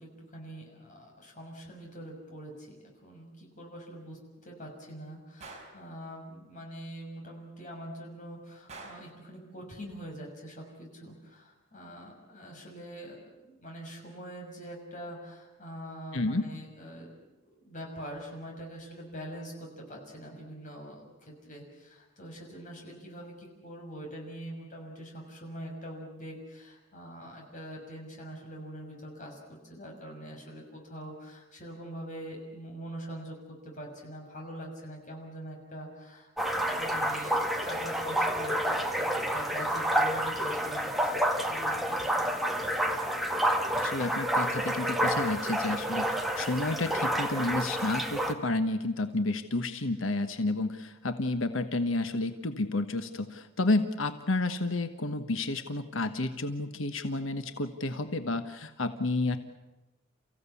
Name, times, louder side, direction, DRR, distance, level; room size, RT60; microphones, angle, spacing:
voice 1, 0.0-2.8 3.0-17.1 17.6-38.6 38.9-42.7, equal, 40° left, 0 dB, 6.4 m, -44 dB
Gunshot gunfire, 5.4-5.8 8.7-9.2, right 3 dB, 35° right, 4.2 m, -46 dB
voice 2, 16.1-16.4 43.7-59.4, left 2 dB, 85° left, 9 dB, 1.3 m, -31 dB
sound 1, 36.4-48.3, right 1 dB, ahead, 1.8 m, -29 dB
30.0 x 15.5 x 8.4 m, 1.0 s
head